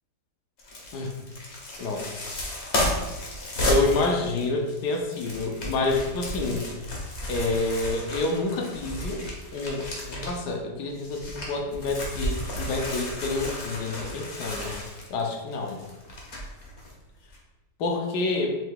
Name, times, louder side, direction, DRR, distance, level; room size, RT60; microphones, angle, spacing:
sound 1, 0.6-10.5 10.9-16.9 17.3-17.4, equal, 45° left, 1.2 m, -33 dB
voice 1, 1.8-2.1 3.6-6.7 7.3-14.8 15.1-15.8 17.8-18.6, left 3 dB, 80° left, 2 dB, 1.3 m, -28 dB
5.5 x 3.7 x 2.3 m, 1.1 s
omnidirectional pair, 1.8 m